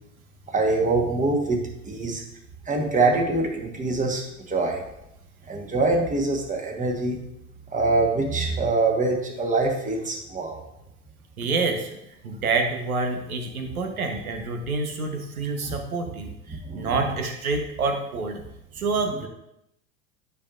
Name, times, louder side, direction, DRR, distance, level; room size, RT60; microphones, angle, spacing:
voice 1, 0.5-2.2 2.7-4.8 5.5-7.2 7.7-10.6 15.6-15.8 16.5-17.0, right 3 dB, 20° right, 2 dB, 1.3 m, -24 dB
voice 2, 11.4-12.0 12.2-18.4 18.7-19.3, right 3 dB, 90° right, 4 dB, 1.1 m, -27 dB
9.5 x 4.6 x 2.5 m, 0.84 s
hypercardioid pair, 95°, 42 cm